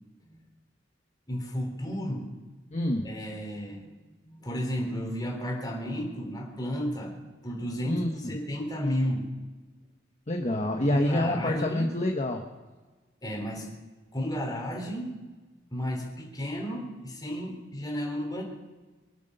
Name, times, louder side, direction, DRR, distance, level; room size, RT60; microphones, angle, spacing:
voice 1, 1.3-2.3 3.0-3.9 4.2-7.1 7.4-9.3 10.9-11.9 13.2-13.7 14.1-15.2 15.7-18.4, equal, 20° left, 0 dB, 3.5 m, -33 dB
voice 2, 2.7-3.1 7.9-8.3 10.3-12.4, left 1 dB, 35° left, 2 dB, 1.1 m, -27 dB
24.0 x 8.3 x 6.7 m, 1.3 s
head